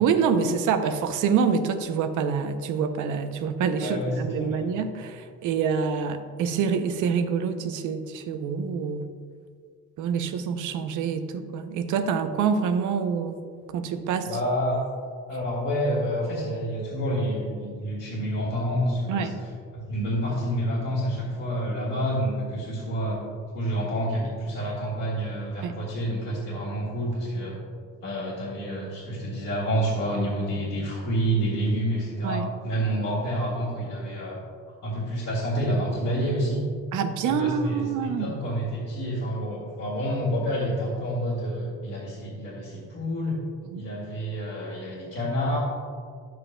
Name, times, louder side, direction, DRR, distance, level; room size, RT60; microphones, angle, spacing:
voice 1, 0.0-9.1 10.0-13.4 13.7-14.3 19.1-19.4 25.6-25.8 32.2-32.5 36.9-38.3 43.7-43.8, right 6 dB, 85° right, 8 dB, 0.6 m, -26 dB
voice 2, 3.8-4.6 14.3-14.8 15.3-19.3 19.7-23.2 23.5-27.6 28.0-34.4 34.8-36.6 37.3-43.4 43.7-45.6, equal, 55° left, -6 dB, 1.9 m, -28 dB
10.0 x 8.0 x 2.2 m, 2.1 s
cardioid pair, 90°, 30 cm